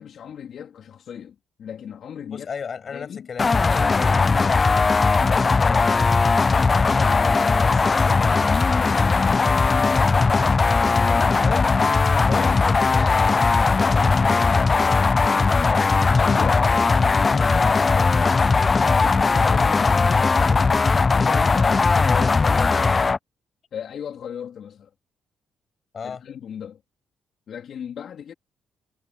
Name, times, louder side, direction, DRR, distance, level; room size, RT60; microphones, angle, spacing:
voice 1, 0.0-2.5 2.9-3.3 9.0-10.2 10.8-11.6 12.3-12.6 16.2-20.7 21.1-22.8 23.7-24.9 26.0-26.8 27.5-28.3, left 8 dB, 60° left, 3.9 m, -36 dB
voice 2, 2.3-4.9 5.2-8.1 9.4-9.6 11.4-11.7 12.2-15.5 19.6-19.7 25.9-26.2, left 6 dB, 45° left, 7.8 m, -36 dB
sound 1, 3.4-23.2, left 4 dB, 30° left, 0.4 m, -18 dB
cardioid pair, 90°, 0 cm